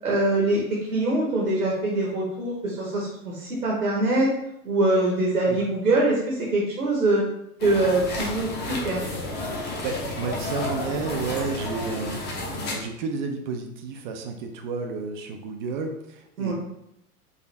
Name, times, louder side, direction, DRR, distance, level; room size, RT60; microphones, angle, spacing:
voice 1, 0.0-4.3 4.6-7.2 7.6-9.0 16.4-16.5, right 2 dB, 80° right, -3 dB, 1.2 m, -23 dB
sound 1, 7.6-12.7, left 2 dB, 20° left, 0.8 m, -31 dB
voice 2, 9.8-16.5, right 4 dB, 35° right, 4 dB, 0.4 m, -31 dB
4.7 x 2.5 x 3.2 m, 0.81 s
figure-of-eight pair, 90°, 46 cm